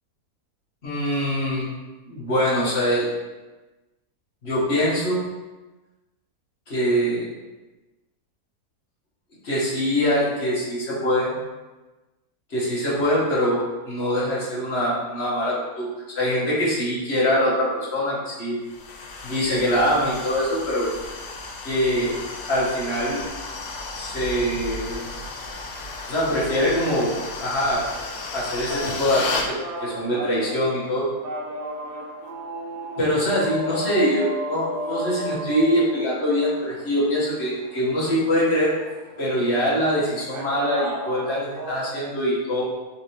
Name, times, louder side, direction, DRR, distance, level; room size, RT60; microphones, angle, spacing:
voice 1, 0.8-1.7 2.1-3.1 4.4-5.2 6.7-7.3 9.4-11.3 12.5-13.6 13.9-15.9 16.1-18.6 19.2-20.9 21.6-22.1 22.5-23.2 23.9-25.1 26.1-27.1 27.4-27.9 28.3-31.1 33.0-38.8 39.2-42.6, equal, 45° left, -7 dB, 1.2 m, -23 dB
sound 1, 18.7-29.5, left 3 dB, 75° left, 0.7 m, -34 dB
sound 2, 28.7-41.9, equal, 65° right, 0.8 m, -34 dB
4.2 x 3.3 x 2.8 m, 1.2 s
omnidirectional pair, 1.8 m